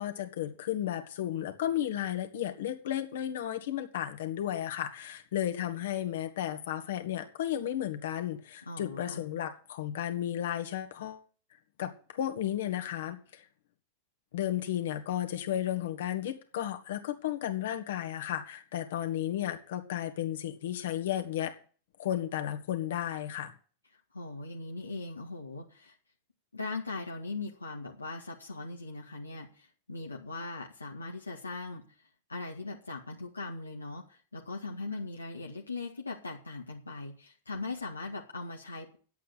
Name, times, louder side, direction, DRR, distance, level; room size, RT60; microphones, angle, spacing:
voice 1, 0.0-11.2 11.8-13.4 14.3-21.5 22.0-23.5, left 11 dB, 65° left, 6 dB, 2.0 m, -33 dB
voice 2, 8.7-9.2 24.1-26.0 26.5-39.0, left 3 dB, 90° left, -1 dB, 1.9 m, -40 dB
9.9 x 8.3 x 8.2 m, 0.42 s
figure-of-eight pair, 95°, 0 cm